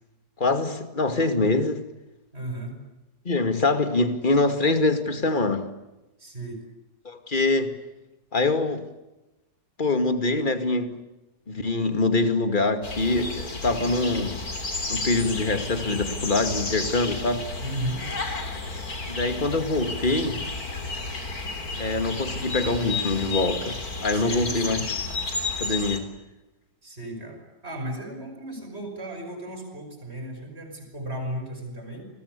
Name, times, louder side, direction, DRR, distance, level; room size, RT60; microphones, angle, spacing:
voice 1, 0.4-1.9 3.2-5.7 7.0-7.8 8.3-8.9 9.8-11.0 11.5-14.4 14.9-17.5 19.1-20.4 21.7-24.9 25.6-26.1, left 3 dB, 30° left, 9 dB, 2.5 m, -24 dB
voice 2, 2.3-2.7 6.2-6.6 17.6-18.0 24.1-24.9 26.8-32.1, right 1 dB, 35° right, 3 dB, 8.0 m, -35 dB
sound 1, 12.8-26.0, left 3 dB, 60° left, 4.1 m, -32 dB
29.5 x 21.5 x 8.4 m, 1.0 s
omnidirectional pair, 1.8 m